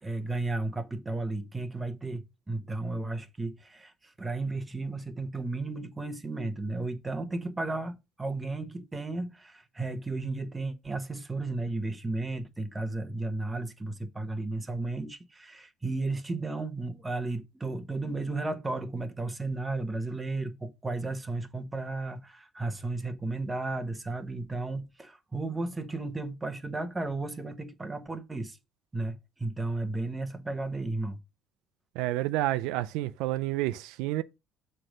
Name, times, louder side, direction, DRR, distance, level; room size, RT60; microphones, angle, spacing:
voice 1, 0.0-28.6 28.9-31.2, right 2 dB, 10° right, 1.0 m, -34 dB
voice 2, 31.9-34.2, right 16 dB, 85° right, 0.4 m, -29 dB
7.6 x 3.3 x 6.3 m
cardioid pair, 135°, 0 cm